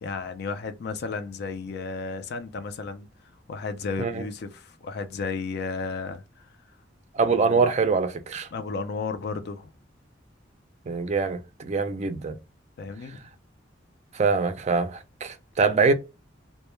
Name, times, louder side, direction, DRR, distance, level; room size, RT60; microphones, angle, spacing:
voice 1, 0.0-3.1 3.5-6.5 7.2-7.7 8.5-9.7 12.8-13.2, left 4 dB, 60° left, 0.4 m, -33 dB
voice 2, 7.1-8.5 10.9-12.4 14.1-15.9, right 4 dB, 35° right, 0.4 m, -24 dB
2.1 x 2.0 x 3.0 m
head